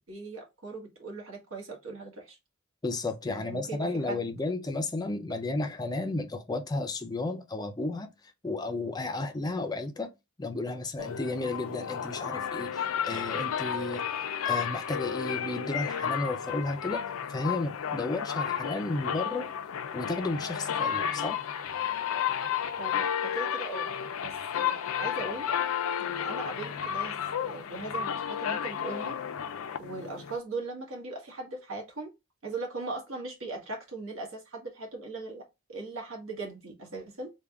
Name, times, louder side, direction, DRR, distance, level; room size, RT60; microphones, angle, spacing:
voice 1, 0.1-2.4 3.3-4.2 22.8-23.9 24.2-25.5 26.0-29.2 29.8-32.1 32.4-37.3, right 3 dB, 70° right, 1.3 m, -39 dB
voice 2, 2.8-8.1 8.4-10.1 10.4-14.0 14.4-17.0 17.3-19.5 19.9-21.4, left 2 dB, 20° left, 0.4 m, -33 dB
sound 1, 11.0-30.4, left 8 dB, 80° left, 0.4 m, -32 dB
3.5 x 2.2 x 3.4 m
head